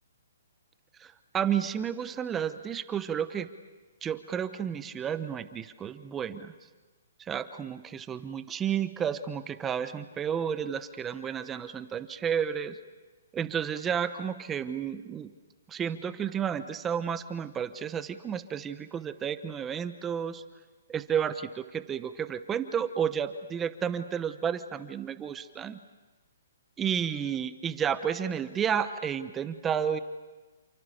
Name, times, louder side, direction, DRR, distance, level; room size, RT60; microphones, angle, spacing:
voice 1, 1.0-3.5 4.0-6.5 7.2-12.8 13.3-15.3 15.7-20.4 20.9-25.8 26.8-30.0, right 8 dB, 15° right, 11 dB, 0.9 m, -31 dB
29.5 x 27.5 x 6.9 m, 1.2 s
hypercardioid pair, 150°, 0 cm